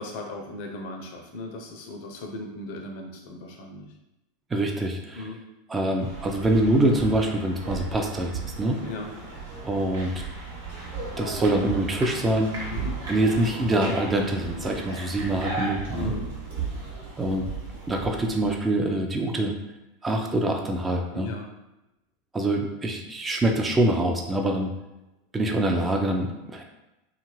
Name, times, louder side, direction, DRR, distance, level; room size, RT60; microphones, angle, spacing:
voice 1, 0.0-3.9 5.1-5.4 8.8-9.1 12.7-13.0 15.9-16.3 21.1-21.5, left 2 dB, 55° left, 2 dB, 0.6 m, -37 dB
voice 2, 4.5-5.3 5.7-8.8 9.6-10.2 11.2-12.5 13.1-16.1 17.2-17.5 17.9-19.5 20.0-21.3 22.3-24.7 25.3-26.6, right 1 dB, 15° right, 2 dB, 0.5 m, -25 dB
sound 1, 6.0-18.5, right 4 dB, 70° right, 1.0 m, -35 dB
2.7 x 2.4 x 3.1 m, 0.95 s
figure-of-eight pair, 85°, 0 cm